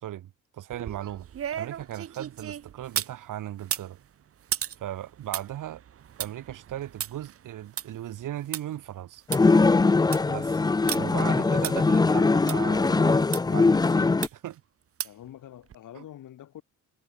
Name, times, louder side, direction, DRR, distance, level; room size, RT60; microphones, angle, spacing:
voice 1, 0.0-1.3 1.5-4.0 4.8-5.8 6.2-9.2 10.3-10.6 10.9-14.6 15.9-16.0, right 12 dB, 80° right, 2.6 m, -37 dB
sound 1, 0.7-3.2 3.6-8.6 9.0-9.1 9.3-9.4 9.9-10.3 10.9-11.0 11.6-11.7 12.5-12.6 13.3-13.4 14.2-14.5 15.0-15.3 15.7-15.8, right 9 dB, 45° right, 1.2 m, -35 dB
sound 2, 9.3-14.3, left 3 dB, 15° left, 0.5 m, -21 dB
voice 2, 11.2-11.6 15.0-16.6, left 11 dB, 75° left, 5.1 m, -46 dB
cardioid pair, 160°, 31 cm